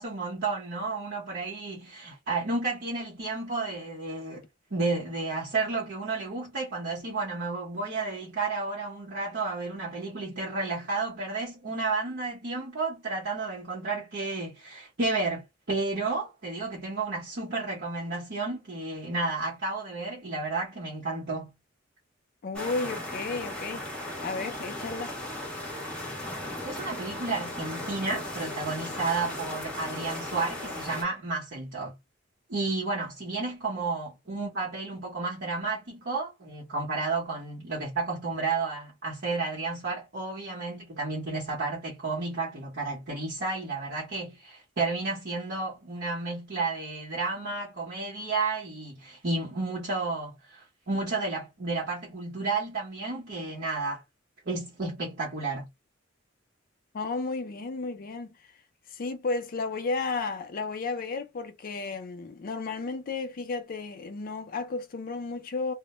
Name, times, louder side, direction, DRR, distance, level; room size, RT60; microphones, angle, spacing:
voice 1, 0.0-4.4 4.7-21.5 26.6-32.0 32.5-54.0 54.5-55.7, right 3 dB, 55° right, 0.9 m, -32 dB
voice 2, 22.4-25.2 56.9-58.3 58.9-65.7, left 3 dB, 45° left, 0.4 m, -33 dB
sound 1, 22.5-31.0, left 1 dB, 5° left, 0.9 m, -37 dB
2.1 x 2.1 x 2.9 m
head